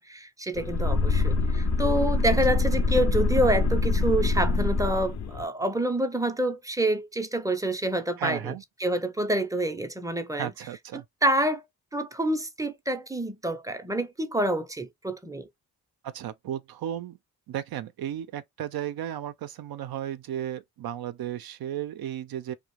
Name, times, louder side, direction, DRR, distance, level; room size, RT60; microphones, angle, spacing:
voice 1, 0.0-8.5 8.8-10.5 10.9-11.6 11.9-15.5, right 1 dB, 10° right, 0.5 m, -27 dB
sound 1, 0.5-5.4, left 3 dB, 40° left, 0.5 m, -24 dB
voice 2, 8.2-8.6 10.4-11.1 16.0-17.2 17.5-22.5, right 11 dB, 60° right, 0.5 m, -34 dB
2.4 x 2.1 x 3.0 m
supercardioid pair, 55°, 41 cm